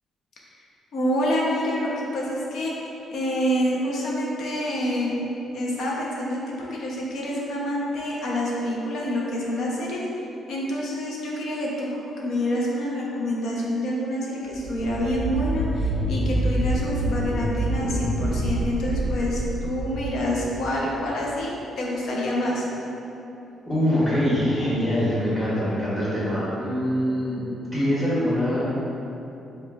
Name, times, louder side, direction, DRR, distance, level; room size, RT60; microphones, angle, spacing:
voice 1, 0.9-2.8 3.1-5.3 5.5-10.0 10.5-22.6, equal, 70° left, -4 dB, 0.6 m, -27 dB
sound 1, 14.5-21.0, right 1 dB, 35° right, 0.6 m, -27 dB
voice 2, 23.6-27.5 27.7-28.6, equal, 10° left, -10 dB, 1.4 m, -24 dB
4.8 x 2.3 x 2.3 m, 2.9 s
cardioid pair, 90°, 0 cm